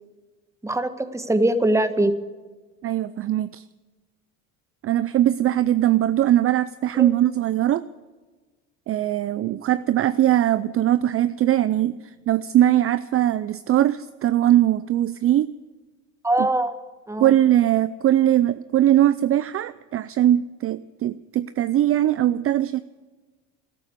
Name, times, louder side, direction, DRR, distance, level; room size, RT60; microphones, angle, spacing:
voice 1, 0.6-2.1 6.9-7.1 16.2-16.7 17.1-17.3, right 1 dB, 10° right, 10 dB, 1.4 m, -22 dB
voice 2, 2.8-3.6 4.8-7.8 8.9-15.5 16.4-16.5 17.2-22.8, right 12 dB, 40° right, 15 dB, 0.5 m, -20 dB
13.5 x 12.0 x 8.6 m, 1.3 s
supercardioid pair, 85°, 36 cm